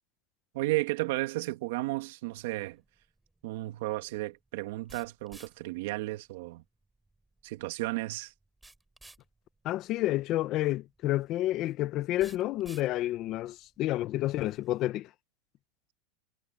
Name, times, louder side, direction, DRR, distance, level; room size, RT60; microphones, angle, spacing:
voice 1, 0.5-2.8 3.4-6.6 7.4-8.3, right 20 dB, 70° right, 1.9 m, -33 dB
sound 1, 2.3-14.8, right 2 dB, 5° right, 4.2 m, -59 dB
voice 2, 9.6-15.1, left 15 dB, 40° left, 0.9 m, -30 dB
supercardioid pair, 155°, 0 cm